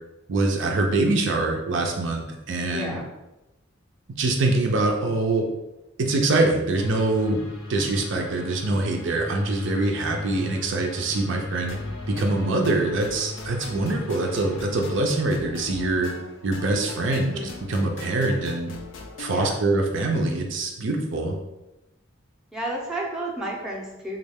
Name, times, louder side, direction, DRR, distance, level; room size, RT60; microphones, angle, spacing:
voice 1, 0.3-3.0 4.2-5.4 6.0-7.4 7.7-11.8 12.1-16.1 16.4-17.3 17.7-18.7 19.2-21.4, right 2 dB, 65° right, 2 dB, 0.4 m, -24 dB
voice 2, 2.6-3.1 17.1-17.5 19.3-19.6 22.5-24.2, right 1 dB, 5° right, -4 dB, 0.5 m, -32 dB
sound 1, 6.7-15.0, left 1 dB, 90° left, 0.9 m, -37 dB
sound 2, 11.7-19.4, left 3 dB, 65° left, 0.4 m, -41 dB
3.1 x 2.3 x 3.4 m, 0.98 s
head